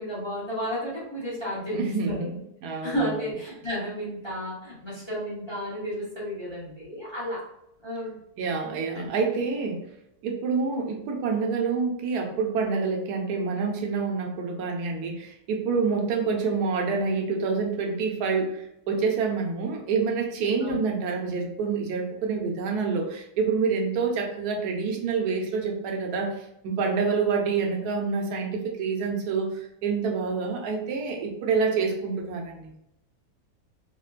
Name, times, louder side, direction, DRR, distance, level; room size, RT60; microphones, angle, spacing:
voice 1, 0.0-1.8 2.0-2.3 2.8-7.4 7.8-8.2 8.9-9.4 20.6-20.8, equal, 20° left, -8 dB, 1.0 m, -32 dB
voice 2, 1.7-3.3 8.4-9.8 10.2-32.7, right 5 dB, 90° right, 1 dB, 1.2 m, -27 dB
4.1 x 2.1 x 2.4 m, 0.82 s
omnidirectional pair, 1.6 m